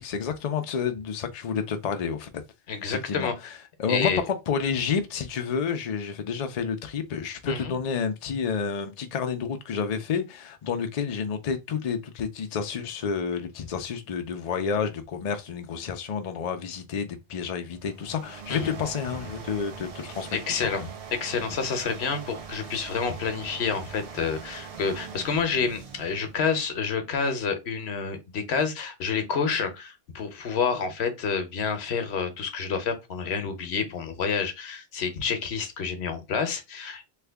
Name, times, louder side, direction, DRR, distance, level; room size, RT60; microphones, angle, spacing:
voice 1, 0.0-2.3 2.8-3.3 3.8-20.9, left 6 dB, 50° left, 0.5 m, -30 dB
voice 2, 2.7-3.5 3.9-4.2 7.4-7.7 18.5-18.7 20.3-20.8 21.1-37.0, left 5 dB, 85° left, 1.1 m, -29 dB
sound 1, 17.7-26.9, right 7 dB, 45° right, 0.5 m, -42 dB
3.3 x 2.2 x 3.4 m
omnidirectional pair, 1.0 m